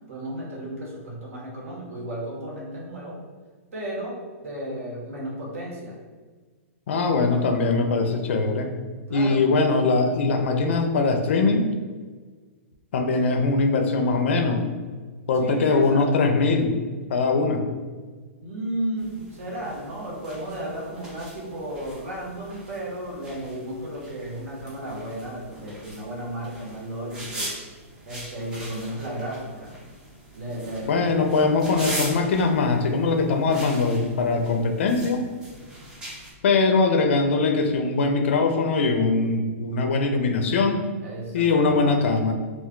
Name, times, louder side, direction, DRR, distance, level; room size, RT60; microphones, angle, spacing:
voice 1, 0.1-3.2 3.7-6.0 9.1-9.7 13.1-13.3 15.4-16.3 18.4-27.5 28.1-29.7 30.3-31.2 41.0-42.0, right 1 dB, 75° right, -4 dB, 1.1 m, -34 dB
voice 2, 6.9-8.7 9.1-11.7 12.9-14.6 15.3-16.7 17.1-17.6 30.8-35.2 36.4-40.9 41.3-42.3, left 3 dB, 60° left, 5 dB, 0.4 m, -21 dB
sound 1, 19.0-36.3, right 1 dB, 10° right, 0.4 m, -40 dB
2.4 x 2.2 x 3.6 m, 1.4 s
hypercardioid pair, 175°, 8 cm